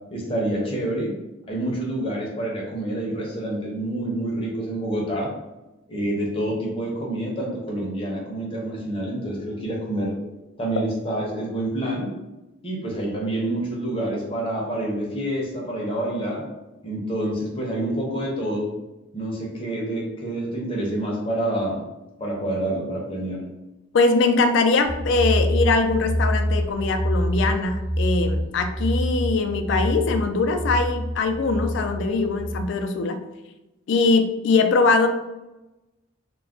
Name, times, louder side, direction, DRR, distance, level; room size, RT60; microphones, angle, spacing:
voice 1, 0.1-1.1 1.5-5.3 5.9-10.1 10.6-12.1 12.6-16.5 16.8-18.7 19.1-21.8 22.2-23.5, right 1 dB, 25° left, -3 dB, 0.6 m, -27 dB
voice 2, 23.9-33.2 33.9-35.1, left 3 dB, 65° left, 6 dB, 0.3 m, -21 dB
sound 1, 24.8-32.6, equal, 15° right, 0.8 m, -26 dB
2.3 x 2.1 x 3.5 m, 1.0 s
head